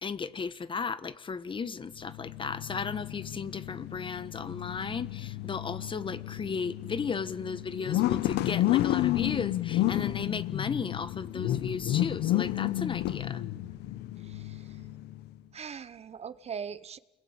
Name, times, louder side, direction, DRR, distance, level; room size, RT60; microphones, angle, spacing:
voice 1, 0.0-13.4, left 5 dB, 30° left, 1.3 m, -35 dB
sound 1, 2.0-15.3, left 14 dB, 80° left, 1.0 m, -31 dB
voice 2, 14.2-14.9 15.5-17.0, right 7 dB, 40° right, 1.0 m, -41 dB
28.5 x 21.5 x 8.9 m
cardioid pair, 110°, 17 cm